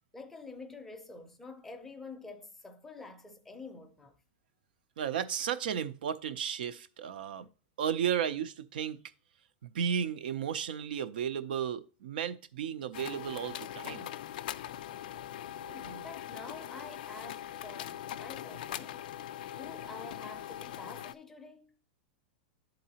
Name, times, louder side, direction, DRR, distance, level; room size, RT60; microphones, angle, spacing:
voice 1, 0.1-4.2 15.6-19.0 19.5-21.8, left 3 dB, 5° left, 0.5 m, -48 dB
voice 2, 5.0-7.5 7.8-9.0 9.6-14.1, right 8 dB, 75° right, 0.5 m, -34 dB
sound 1, 12.9-21.1, left 11 dB, 65° left, 0.4 m, -41 dB
11.0 x 3.9 x 2.8 m
supercardioid pair, 165°, 5 cm